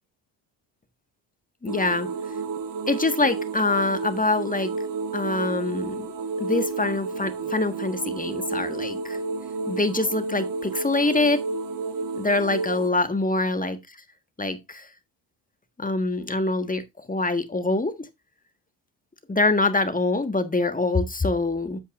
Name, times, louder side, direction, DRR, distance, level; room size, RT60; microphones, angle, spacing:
voice 1, 1.6-2.1 2.9-4.7 5.1-6.1 6.4-9.2 9.7-11.4 12.2-13.8 14.4-14.9 15.8-16.8 17.1-17.9 19.3-21.8, left 2 dB, 15° left, 1.5 m, -24 dB
sound 1, 1.7-12.9, right 4 dB, 40° right, 1.4 m, -31 dB
9.2 x 8.2 x 2.5 m
hypercardioid pair, 60°, 49 cm